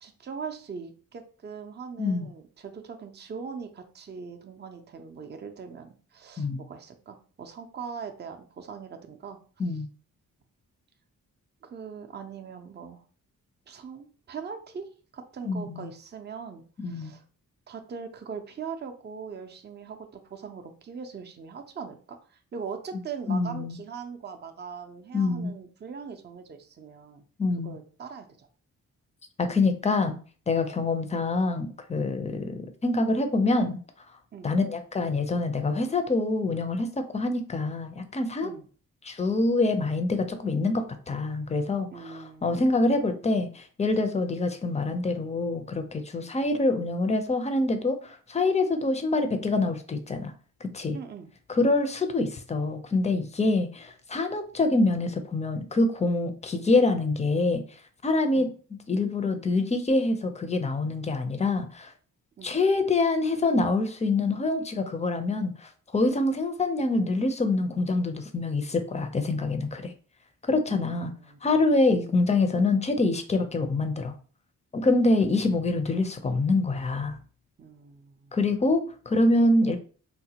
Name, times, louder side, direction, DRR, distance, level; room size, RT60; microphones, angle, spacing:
voice 1, 0.0-9.4 9.7-9.8 11.6-13.0 13.7-14.9 15.1-17.2 17.7-27.2 27.6-28.5 34.3-34.5 38.4-38.7 41.9-42.7 46.2-46.3 50.9-51.3 53.5-53.6 58.3-58.5 62.4-62.6 70.7-71.4 71.9-72.0 74.9-75.0 77.6-78.4, right 6 dB, 30° right, 5 dB, 0.5 m, -41 dB
voice 2, 15.5-15.9 16.8-17.1 23.3-23.8 25.1-25.5 27.4-27.8 29.4-30.2 30.5-33.8 34.4-38.5 39.0-50.3 50.6-51.0 51.5-57.6 58.0-58.5 58.9-61.9 62.4-69.9 70.4-71.1 71.4-74.1 74.7-77.2 78.3-79.8, left 2 dB, 20° left, 8 dB, 0.5 m, -25 dB
3.9 x 2.1 x 2.8 m, 0.41 s
cardioid pair, 80°, 33 cm